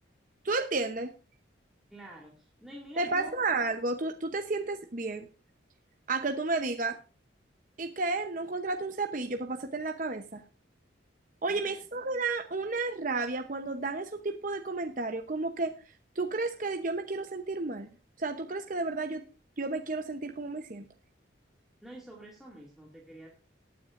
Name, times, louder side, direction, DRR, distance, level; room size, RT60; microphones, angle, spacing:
voice 1, 0.4-1.1 3.0-5.3 6.1-7.0 7.8-10.4 11.4-17.9 18.2-19.2 19.6-20.8, right 3 dB, 45° right, 5 dB, 0.8 m, -32 dB
voice 2, 1.9-3.4 11.5-11.7 21.8-23.3, right 1 dB, ahead, -4 dB, 2.2 m, -48 dB
19.5 x 9.4 x 2.6 m, 0.34 s
head